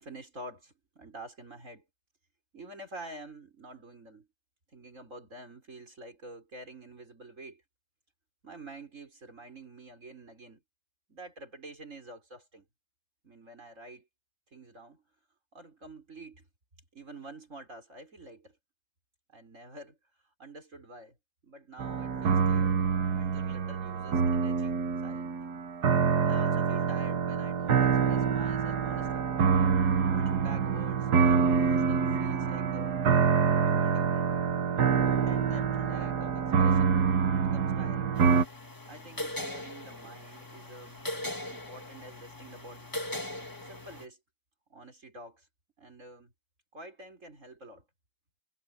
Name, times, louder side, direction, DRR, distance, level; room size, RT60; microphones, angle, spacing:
voice 1, 0.0-1.8 2.5-4.3 4.7-7.6 8.4-10.6 11.1-12.7 13.2-14.1 14.5-15.0 15.5-16.5 16.9-18.6 19.3-20.0 20.4-21.2 21.4-22.8 23.1-25.5 26.2-29.3 30.1-33.0 33.8-34.3 35.0-37.1 37.4-38.1 38.9-41.0 41.5-42.9 43.6-44.2 44.7-45.5 45.8-46.3 46.7-47.8, right 2 dB, 50° right, 5.6 m, -48 dB
sound 1, 21.8-38.5, right 6 dB, 80° right, 1.8 m, -26 dB
sound 2, 38.1-44.1, left 1 dB, 15° left, 1.7 m, -40 dB
omnidirectional pair, 1.7 m